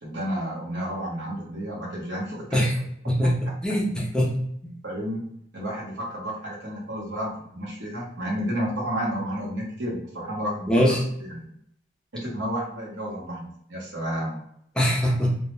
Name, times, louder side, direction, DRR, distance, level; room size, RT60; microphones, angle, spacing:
voice 1, 0.0-2.6 4.8-11.5 12.1-14.4, equal, 80° right, -3 dB, 0.9 m, -31 dB
voice 2, 3.1-4.4 4.6-4.7 10.7-11.0 14.8-15.4, equal, 5° left, -4 dB, 0.4 m, -22 dB
2.2 x 2.1 x 3.0 m, 0.72 s
head